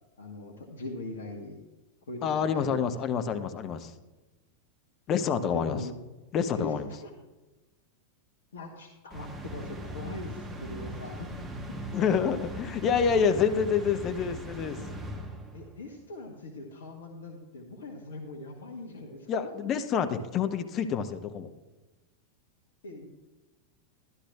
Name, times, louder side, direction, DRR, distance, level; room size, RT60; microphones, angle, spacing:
voice 1, 0.2-1.6 2.1-3.1 5.2-5.9 6.5-6.7 7.0-7.1 8.5-11.7 12.2-12.3 15.5-19.5 22.8-23.1, left 2 dB, 65° left, 1 dB, 1.1 m, -41 dB
voice 2, 2.2-3.9 5.1-5.8 6.3-6.9 11.9-14.8 19.3-21.5, left 7 dB, 30° left, 9 dB, 0.7 m, -27 dB
sound 1, 9.1-15.8, equal, 15° right, 1.2 m, -40 dB
12.0 x 11.5 x 2.4 m, 1.1 s
figure-of-eight pair, 90°, 0 cm